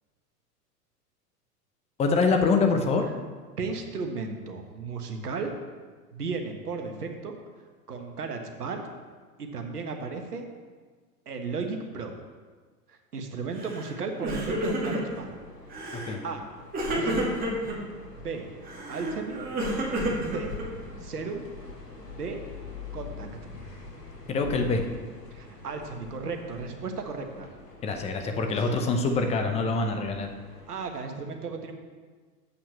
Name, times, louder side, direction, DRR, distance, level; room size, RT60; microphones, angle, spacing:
voice 1, 2.0-3.1 16.0-16.2 24.3-24.8 27.8-30.3, left 4 dB, 15° left, 5 dB, 0.7 m, -25 dB
voice 2, 3.6-5.5 6.1-7.3 7.9-8.8 9.4-10.5 11.3-12.2 12.9-15.4 16.2-16.5 16.8-17.2 18.2-18.5 18.9-19.4 20.3-20.5 21.0-21.4 22.1-22.4 22.9-23.3 25.3-27.5 28.6-28.7 30.7-31.7, right 4 dB, 70° right, 4 dB, 1.5 m, -35 dB
Crying sobbing, 13.6-13.9 14.2-15.2 15.7-16.2 16.7-17.8 18.6-20.9, right 1 dB, 20° right, 2.5 m, -30 dB
sound 1, 14.4-30.9, left 3 dB, 85° left, 1.8 m, -45 dB
8.0 x 5.9 x 6.9 m, 1.5 s
figure-of-eight pair, 95°, 47 cm